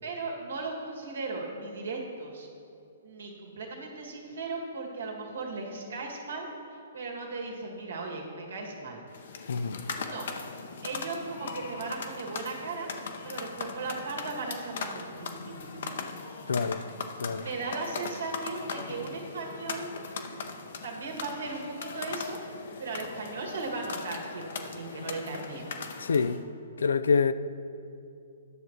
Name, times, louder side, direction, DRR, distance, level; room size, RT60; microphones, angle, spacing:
voice 1, 0.0-2.5 3.0-9.0 10.1-10.3 10.8-12.9 13.2-16.0 17.4-19.9 20.8-22.4 22.8-25.7, right 3 dB, 75° right, 1.9 m, -37 dB
sound 1, 9.1-26.4, left 5 dB, 65° left, 0.8 m, -39 dB
voice 2, 9.5-9.8 16.5-16.8 17.2-17.5 26.0-26.4 26.8-27.3, left 5 dB, 80° left, 0.4 m, -26 dB
9.7 x 6.6 x 4.5 m
hypercardioid pair, 130°, 0 cm